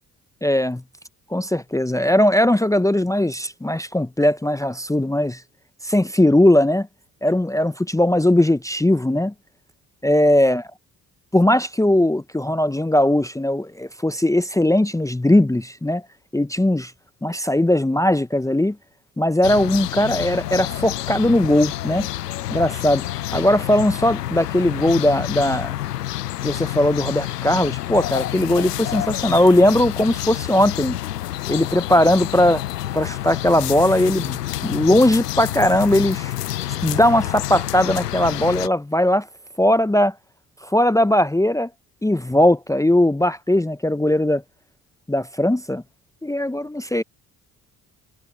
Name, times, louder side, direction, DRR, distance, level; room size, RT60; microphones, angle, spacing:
voice 1, 0.4-0.8 1.3-5.4 5.8-6.9 7.2-9.3 10.0-10.6 11.3-16.0 16.3-16.9 17.2-18.8 19.2-22.1 22.5-23.0 23.3-25.7 26.4-31.0 31.5-32.6 32.9-36.3 36.8-39.3 39.6-40.1 40.6-41.7 42.0-44.4 45.1-45.8 46.2-47.0, left 1 dB, 5° left, 1.0 m, -19 dB
sound 1, 19.4-38.7, left 14 dB, 85° left, 1.0 m, -28 dB
figure-of-eight pair, 45°, 46 cm